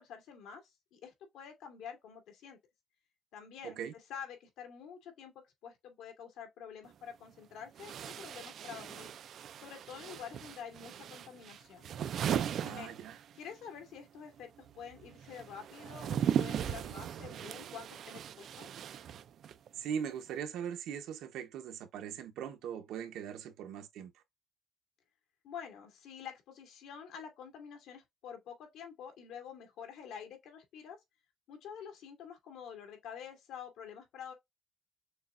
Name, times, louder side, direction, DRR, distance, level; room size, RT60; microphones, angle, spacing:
voice 1, 0.0-2.6 3.3-3.8 4.1-9.1 9.6-11.9 12.4-12.9 13.3-18.7 25.4-31.0 31.5-34.3, left 7 dB, 90° left, 2.3 m, -48 dB
sound 1, 6.8-6.9 7.8-13.6 13.8-19.7, right 9 dB, 50° right, 0.4 m, -38 dB
voice 2, 12.6-13.2 19.7-24.1, right 8 dB, 80° right, 0.9 m, -40 dB
6.4 x 2.3 x 2.5 m
cardioid pair, 165°, 0 cm